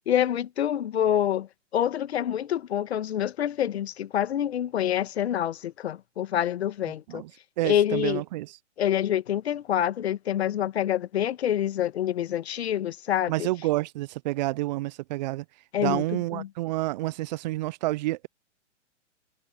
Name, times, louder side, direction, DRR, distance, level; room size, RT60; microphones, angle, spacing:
voice 1, 0.1-7.2 7.6-8.2 8.8-13.5 15.7-16.0 16.3-16.5, left 10 dB, 60° left, 1.8 m, -26 dB
voice 2, 7.6-8.5 13.3-15.4 15.8-18.3, right 18 dB, 35° right, 0.7 m, -29 dB
figure-of-eight pair, 125°, 37 cm